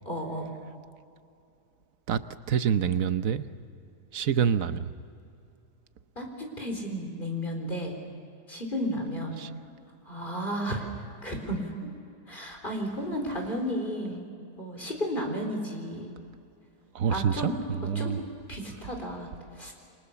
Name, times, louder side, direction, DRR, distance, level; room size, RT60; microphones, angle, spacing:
voice 1, 0.1-0.5 6.2-8.0 8.5-9.4 10.1-10.9 11.2-11.9 12.3-14.2 14.6-16.1 17.1-17.5 18.0-18.1 18.5-19.3 19.6-19.7, equal, 30° left, 2 dB, 4.3 m, -33 dB
voice 2, 2.1-3.5 4.1-4.9 9.4-9.5 16.9-17.5 17.8-18.2, right 8 dB, 60° right, 12 dB, 1.2 m, -26 dB
29.5 x 25.0 x 7.0 m, 2.5 s
omnidirectional pair, 1.7 m